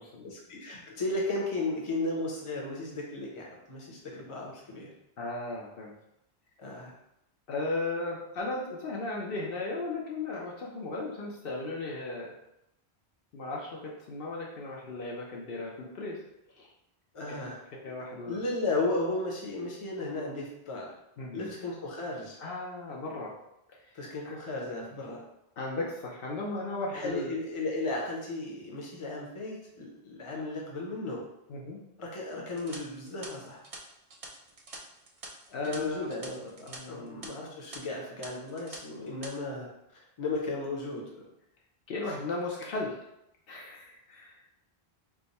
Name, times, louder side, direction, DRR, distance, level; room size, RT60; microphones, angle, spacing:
voice 1, 0.2-4.9 6.6-6.9 17.1-17.6 18.3-20.9 21.3-22.4 23.9-25.2 26.9-31.2 32.0-33.6 35.7-41.3, left 2 dB, 35° left, -2 dB, 0.8 m, -35 dB
voice 2, 5.2-5.9 7.5-12.3 13.3-16.2 16.5-16.7 17.3-17.4 17.8-18.4 21.2-21.5 22.4-23.3 23.7-23.8 24.2-24.4 25.6-27.3 31.5-31.8 35.5-36.1 36.7-37.1 41.9-43.0 43.5-44.5, left 2 dB, 65° left, -3 dB, 0.8 m, -36 dB
sound 1, 32.5-36.8 37.1-37.3 37.7-37.8 38.2-38.8 39.1-39.3, right 3 dB, 45° right, 0.5 m, -46 dB
3.4 x 2.2 x 4.0 m, 0.83 s
omnidirectional pair, 1.0 m